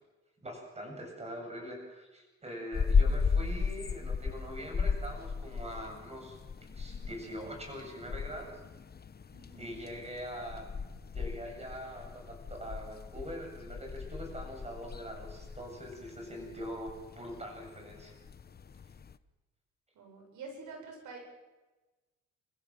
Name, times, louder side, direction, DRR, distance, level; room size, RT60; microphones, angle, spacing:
voice 1, 0.4-6.4 6.7-8.6 9.6-10.7 11.1-18.1, equal, 20° right, 3 dB, 7.9 m, -43 dB
sound 1, 2.7-19.2, left 5 dB, 30° left, 1.0 m, -36 dB
voice 2, 9.3-9.7 19.9-21.2, right 4 dB, 80° right, 2 dB, 7.7 m, -47 dB
30.0 x 15.5 x 7.5 m, 1.2 s
cardioid pair, 90°, 30 cm